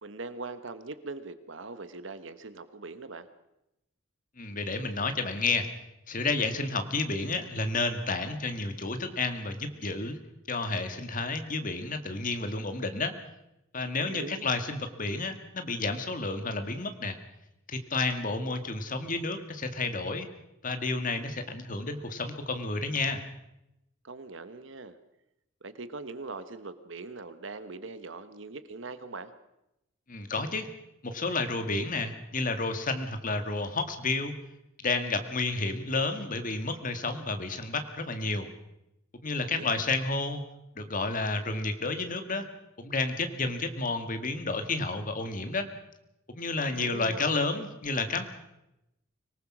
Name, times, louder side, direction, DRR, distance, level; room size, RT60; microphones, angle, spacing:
voice 1, 0.0-3.3 14.0-14.4 24.0-25.0 25.6-29.3 39.4-39.8 46.8-47.3, right 3 dB, 65° right, 12 dB, 1.2 m, -41 dB
voice 2, 4.4-5.7 6.1-10.2 10.5-13.1 13.7-17.2 17.7-20.3 20.6-23.2 30.1-30.7 31.0-34.3 34.8-38.5 39.2-40.4 40.8-42.5 42.8-45.7 46.3-48.2, left 3 dB, 40° left, 8 dB, 1.9 m, -31 dB
25.0 x 19.0 x 6.1 m, 0.87 s
head